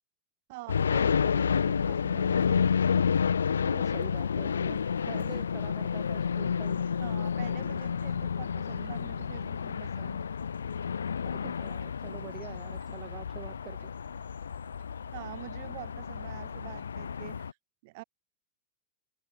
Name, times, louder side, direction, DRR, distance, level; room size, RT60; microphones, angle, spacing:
voice 1, 0.5-2.7 7.0-10.2 15.1-17.6 17.8-18.0, right 23 dB, 50° right, 3.4 m, -46 dB
sound 1, 0.7-17.5, left 7 dB, 70° left, 0.3 m, -30 dB
sound 2, 1.7-17.5, right 9 dB, 65° right, 6.3 m, -63 dB
voice 2, 3.6-4.8 5.0-7.0 11.2-13.9, right 11 dB, 30° right, 1.2 m, -46 dB
open air
figure-of-eight pair, 90°, 0 cm